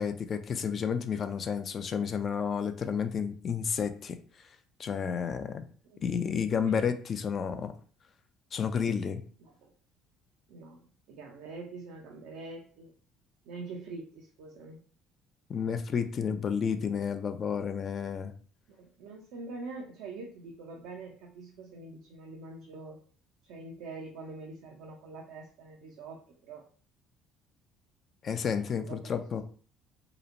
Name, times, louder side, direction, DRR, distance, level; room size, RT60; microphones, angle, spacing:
voice 1, 0.0-4.2 4.8-5.6 6.0-7.7 8.5-9.2 15.5-18.3 28.2-29.4, left 7 dB, 50° left, 9 dB, 0.4 m, -31 dB
voice 2, 9.4-9.7 10.5-12.9 13.4-14.8 18.7-23.0 23.4-26.6 28.6-29.1, right 3 dB, 80° right, -1 dB, 0.5 m, -44 dB
2.9 x 2.1 x 2.5 m, 0.43 s
supercardioid pair, 70°, 0 cm